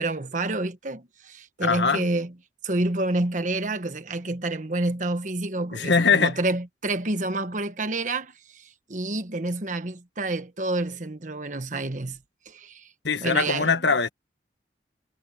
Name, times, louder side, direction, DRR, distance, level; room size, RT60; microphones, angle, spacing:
voice 1, 0.0-2.3 2.6-12.2 12.4-12.9 13.2-13.7, right 2 dB, 45° right, 1.3 m, -29 dB
voice 2, 1.6-2.1 5.7-6.4 13.0-14.1, left 4 dB, 80° left, 1.5 m, -22 dB
head